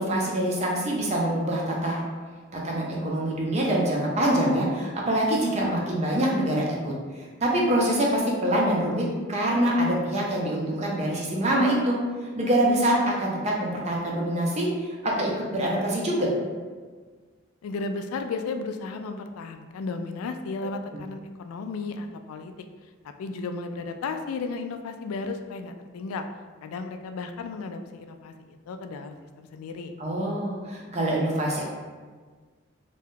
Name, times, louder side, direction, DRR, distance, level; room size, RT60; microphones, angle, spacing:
voice 1, 0.0-2.0 2.5-6.9 7.4-12.0 12.4-16.3 20.6-20.7 30.0-31.6, right 1 dB, 30° right, -3 dB, 0.5 m, -25 dB
voice 2, 17.6-22.5 23.0-26.3 26.6-29.9, left 3 dB, 90° left, 7 dB, 0.3 m, -34 dB
2.6 x 2.3 x 3.5 m, 1.5 s
head